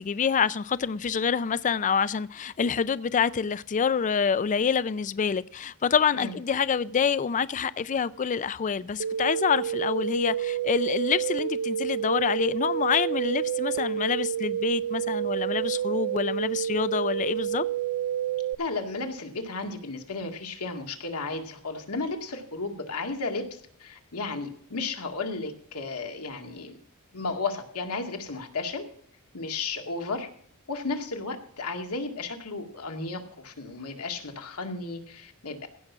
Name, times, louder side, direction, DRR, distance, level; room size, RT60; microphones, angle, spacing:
voice 1, 0.0-17.6, left 6 dB, 35° left, 0.4 m, -27 dB
sound 1, 9.0-18.5, right 10 dB, 85° right, 0.4 m, -29 dB
voice 2, 18.6-26.8 27.1-28.9 29.3-30.3 30.7-35.7, left 3 dB, 85° left, 2.1 m, -34 dB
16.5 x 6.0 x 6.1 m
head